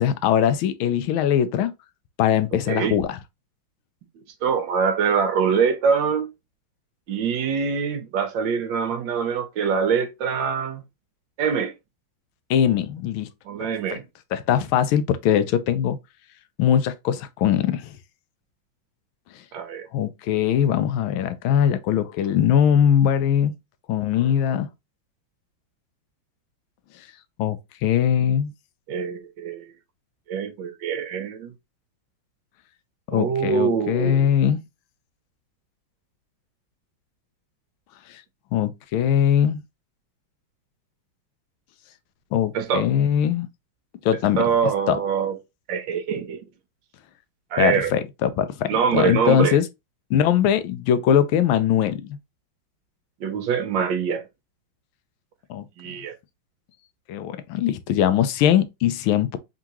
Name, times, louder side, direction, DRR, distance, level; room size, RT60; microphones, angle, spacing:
voice 1, 0.0-1.7 2.2-3.2 12.5-13.3 13.9-14.0 14.3-16.0 16.6-17.9 19.9-23.5 23.9-24.7 27.4-28.5 33.1-34.6 38.1-38.2 38.5-39.6 42.3-43.5 44.0-44.4 44.9-45.0 47.6-49.6 50.1-52.2 55.5-55.9 57.1-59.4, left 9 dB, 90° left, 1.5 m, -21 dB
voice 2, 4.2-6.3 7.1-10.8 11.4-11.7 13.4-14.0 19.5-19.9 28.9-29.7 30.3-31.5 33.1-34.3 42.5-42.9 44.4-45.4 45.7-46.4 47.5-47.9 48.6-49.6 53.2-54.2 55.8-56.1, right 6 dB, 70° right, 1.4 m, -24 dB
3.7 x 3.7 x 2.9 m
omnidirectional pair, 2.2 m